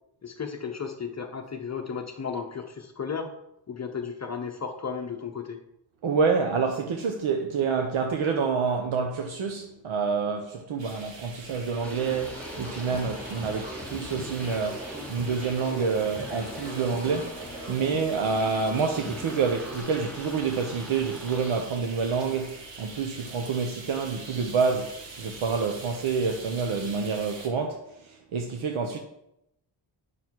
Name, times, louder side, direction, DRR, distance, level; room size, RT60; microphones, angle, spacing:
voice 1, 0.2-3.3 3.7-5.6, left 6 dB, 35° left, 0.7 m, -34 dB
voice 2, 6.0-29.0, right 5 dB, 85° right, 1.0 m, -28 dB
sound 1, 10.8-27.5, right 3 dB, 65° right, 1.6 m, -44 dB
sound 2, 11.8-21.5, left 1 dB, 5° left, 0.9 m, -43 dB
sound 3, 12.2-19.8, right 1 dB, 15° right, 3.5 m, -41 dB
9.5 x 6.4 x 4.6 m
wide cardioid pair, 175°, 47 cm